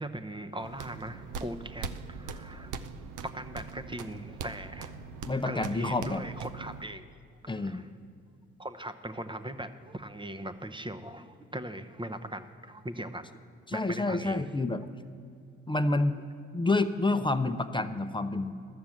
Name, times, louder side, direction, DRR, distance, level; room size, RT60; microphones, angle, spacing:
voice 1, 0.0-2.7 3.3-4.9 5.4-7.0 7.4-7.9 8.6-13.3 13.7-14.5, right 1 dB, 15° right, 9 dB, 0.8 m, -40 dB
sound 1, 0.6-6.8, right 5 dB, 65° right, 0.7 m, -41 dB
voice 2, 5.3-6.2 7.5-7.8 13.7-14.8 15.7-16.2 16.5-18.5, left 2 dB, 15° left, 9 dB, 0.7 m, -28 dB
12.0 x 7.0 x 7.8 m, 2.5 s
hypercardioid pair, 50°, 34 cm